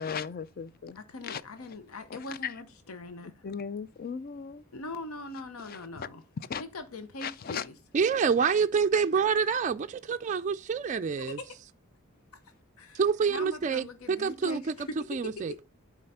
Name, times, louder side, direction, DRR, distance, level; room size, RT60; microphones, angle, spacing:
voice 1, 0.0-1.0 1.2-1.4 2.4-2.5 3.4-4.6 5.7-6.1 6.5-6.6 7.2-7.7, left 6 dB, 45° left, 0.4 m, -36 dB
voice 2, 0.9-3.4 4.7-6.2 6.6-7.7 11.2-11.5 12.8-13.0 13.3-15.0 15.2-15.6, left 2 dB, 80° left, 0.8 m, -41 dB
voice 3, 7.9-11.4 12.9-14.7 15.1-15.6, right 6 dB, 35° right, 0.3 m, -27 dB
7.6 x 4.7 x 5.5 m
head